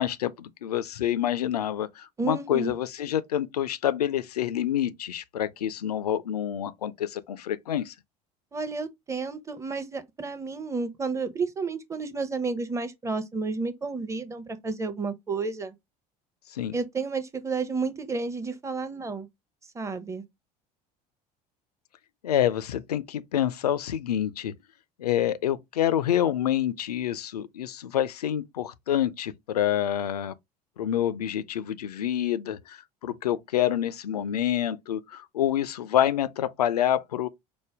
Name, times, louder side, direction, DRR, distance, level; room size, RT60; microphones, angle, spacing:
voice 1, 0.0-7.9 16.5-16.8 22.2-24.5 25.0-30.3 30.8-37.3, left 11 dB, 75° left, 0.4 m, -27 dB
voice 2, 2.2-2.7 8.5-15.7 16.7-19.3 19.7-20.2, right 4 dB, 15° right, 0.7 m, -31 dB
5.0 x 2.1 x 3.3 m
figure-of-eight pair, 65°, 20 cm